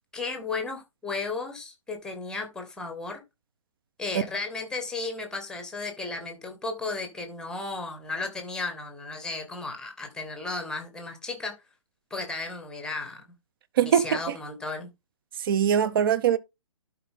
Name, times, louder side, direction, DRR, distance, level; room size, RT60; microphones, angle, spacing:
voice 1, 0.1-3.2 4.0-11.5 12.1-13.2 13.8-14.9, left 3 dB, 5° left, 2.1 m, -34 dB
voice 2, 15.4-16.4, right 9 dB, 40° right, 0.9 m, -22 dB
11.5 x 4.9 x 3.8 m
figure-of-eight pair, 130°, 18 cm